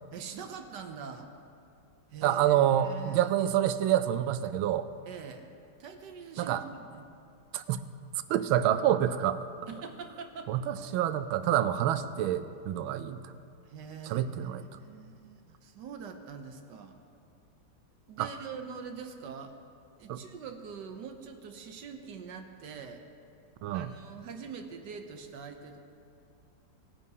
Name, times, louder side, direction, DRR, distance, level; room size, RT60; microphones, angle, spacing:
voice 1, 0.1-1.3 2.1-3.3 5.1-5.5 5.8-7.1 9.7-10.5 13.7-17.0 18.1-19.5 20.0-23.0 23.7-25.8, right 6 dB, 65° right, 6 dB, 1.3 m, -44 dB
voice 2, 2.2-4.9 6.4-6.6 7.5-7.8 8.3-9.4 10.5-13.2 14.0-14.6 18.2-18.3 20.1-20.2 23.6-23.9, right 11 dB, 90° right, 12 dB, 1.4 m, -27 dB
18.5 x 10.0 x 2.8 m, 2.5 s
omnidirectional pair, 2.2 m